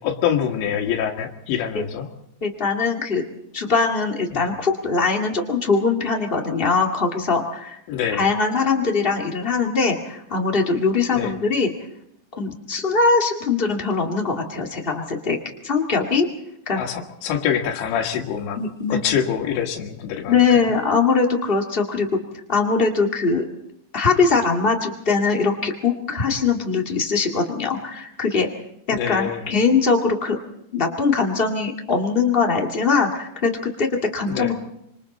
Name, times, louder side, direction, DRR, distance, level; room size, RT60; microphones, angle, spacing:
voice 1, 0.0-2.1 4.3-4.5 7.9-8.3 11.1-11.3 16.7-18.6 18.9-20.7 28.9-29.4 34.3-34.5, left 8 dB, 90° left, 2 dB, 4.0 m, -25 dB
voice 2, 2.4-3.2 3.5-7.8 8.1-11.7 12.3-15.4 15.6-16.3 16.7-16.8 18.5-19.0 20.3-22.1 22.5-23.4 23.9-28.5 28.9-30.4 30.7-34.5, left 4 dB, 35° left, 1 dB, 0.8 m, -21 dB
26.0 x 26.0 x 4.2 m, 0.77 s
omnidirectional pair, 5.0 m